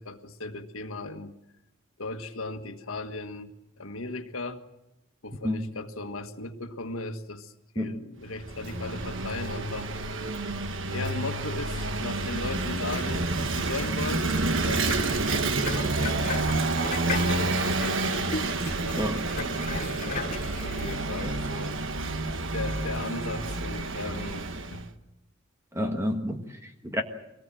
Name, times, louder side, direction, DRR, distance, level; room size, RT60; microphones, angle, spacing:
voice 1, 0.0-1.3 2.0-4.6 5.2-9.9 10.9-16.4 16.8-18.1 20.0-20.3 20.6-21.8 22.5-24.9, left 2 dB, 90° left, 7 dB, 1.6 m, -37 dB
Vehicle / Engine, 8.3-24.9, right 2 dB, 65° right, 1.3 m, -29 dB
sound 1, 14.4-21.0, left 3 dB, 40° left, 2.5 m, -36 dB
voice 2, 19.0-19.5 21.2-21.3 25.7-27.0, left 1 dB, 15° right, 4 dB, 1.5 m, -30 dB
24.0 x 19.0 x 7.6 m, 0.88 s
head